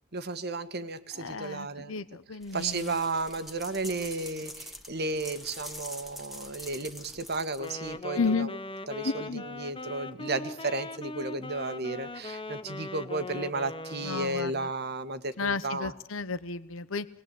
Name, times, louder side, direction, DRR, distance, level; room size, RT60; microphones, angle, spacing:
voice 1, 0.1-1.9 2.5-8.5 8.9-15.9, right 3 dB, 50° right, 10 dB, 1.7 m, -33 dB
voice 2, 1.1-3.0 8.1-8.5 9.0-9.5 14.0-14.7 15.4-17.1, left 4 dB, 65° left, 14 dB, 0.9 m, -32 dB
sound 1, 2.4-8.0, equal, ahead, 1.9 m, -45 dB
Wind instrument woodwind instrument, 7.5-14.7, left 2 dB, 25° left, 0.9 m, -40 dB
26.5 x 20.5 x 8.4 m, 0.81 s
head